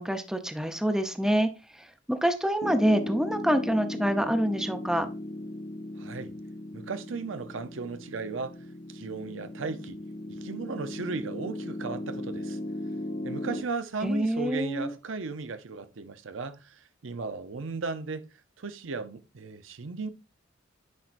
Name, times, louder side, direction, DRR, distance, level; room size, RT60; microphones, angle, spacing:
voice 1, 0.0-5.1 14.0-14.9, equal, 5° right, 0.7 m, -26 dB
Piano, 2.6-13.6, left 1 dB, 60° left, 1.0 m, -37 dB
voice 2, 6.0-6.4 6.7-8.6 8.9-10.0 10.3-12.6 13.2-18.3 18.6-20.1, right 4 dB, 85° right, 0.6 m, -36 dB
9.7 x 4.5 x 2.5 m
head